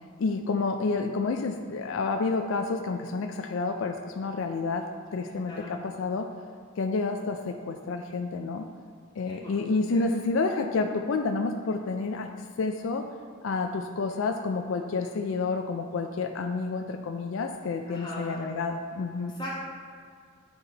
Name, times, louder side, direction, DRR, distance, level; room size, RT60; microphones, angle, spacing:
voice 1, 0.2-6.3 6.8-8.7 9.2-13.1 13.4-19.3, left 3 dB, 70° left, 4 dB, 0.4 m, -29 dB
voice 2, 5.2-5.7 9.3-9.5 9.9-10.0 17.9-18.5 19.4-19.5, left 1 dB, 20° left, -7 dB, 1.1 m, -40 dB
9.3 x 4.1 x 4.0 m, 2.1 s
head